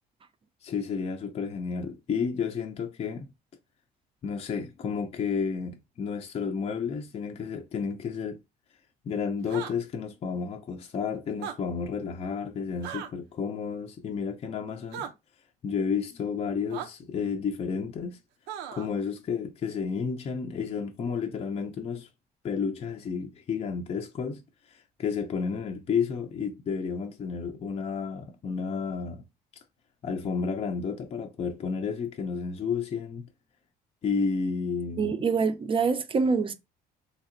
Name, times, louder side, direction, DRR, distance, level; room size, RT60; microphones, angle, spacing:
voice 1, 0.6-3.3 4.2-8.4 9.0-15.1 15.6-18.2 18.7-22.1 22.4-24.4 24.7-29.2 30.0-33.3 34.0-35.2, left 6 dB, 35° left, 0.5 m, -31 dB
sound 1, 9.5-9.7 11.3-11.6 12.8-13.1 14.9-15.1 16.7-16.9 18.5-18.9, right 9 dB, 90° right, 0.5 m, -36 dB
voice 2, 35.0-36.5, right 5 dB, 30° right, 0.4 m, -25 dB
3.3 x 2.8 x 2.5 m
cardioid pair, 110°, 17 cm